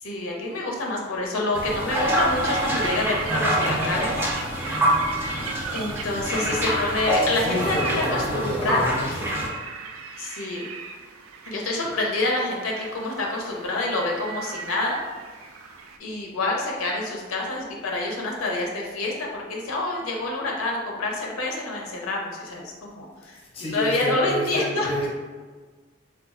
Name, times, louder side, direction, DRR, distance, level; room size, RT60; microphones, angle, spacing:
voice 1, 0.0-4.2 5.7-8.9 10.2-10.6 11.5-15.0 16.0-23.4 23.7-24.9, left 2 dB, 80° left, -1 dB, 0.5 m, -27 dB
sound 1, 1.5-9.5, equal, 10° right, 0.4 m, -26 dB
sound 2, 2.2-16.0, right 4 dB, 80° right, 0.3 m, -37 dB
voice 2, 7.3-9.3 23.5-25.1, equal, 30° left, -4 dB, 0.6 m, -29 dB
4.0 x 2.3 x 2.4 m, 1.4 s
head